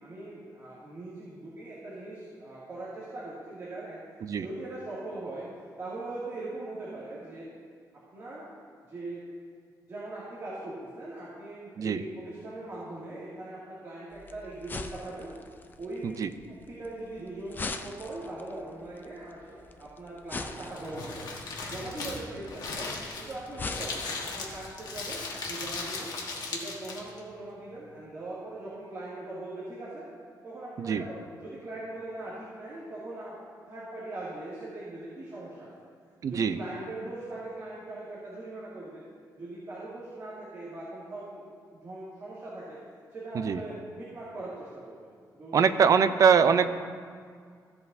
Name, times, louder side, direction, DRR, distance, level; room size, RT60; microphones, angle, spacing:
voice 1, 0.0-4.0 4.4-5.5 5.8-7.5 8.1-8.4 8.9-9.2 9.9-15.3 15.8-16.2 16.5-21.3 21.7-22.9 23.2-25.2 25.5-26.1 26.5-30.1 30.4-35.7 36.3-39.0 39.4-41.4 41.7-42.8 43.1-45.1 45.3-45.6, right 2 dB, 35° right, -9 dB, 2.2 m, -40 dB
sound 1, 14.1-25.9, left 3 dB, 25° left, 0.4 m, -44 dB
Crumpling crinkling, 20.4-27.2, left 3 dB, 65° left, 1.5 m, -37 dB
voice 2, 36.2-36.6 43.3-43.6 45.5-46.7, right 6 dB, 50° right, 11 dB, 0.5 m, -23 dB
15.5 x 7.9 x 2.6 m, 2.1 s
wide cardioid pair, 150°, 7 cm